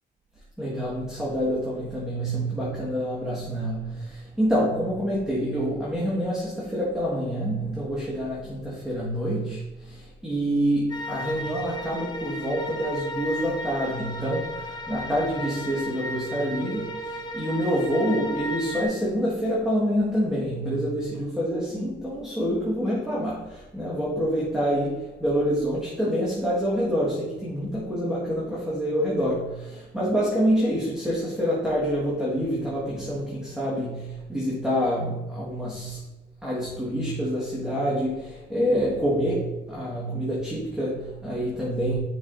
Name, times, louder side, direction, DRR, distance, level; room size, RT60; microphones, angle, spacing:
voice 1, 0.6-36.1 36.4-42.0, equal, 5° right, -7 dB, 1.7 m, -27 dB
sound 1, 10.9-18.8, equal, 20° left, 1.1 m, -34 dB
7.3 x 5.6 x 2.7 m, 1.1 s
cardioid pair, 90°, 20 cm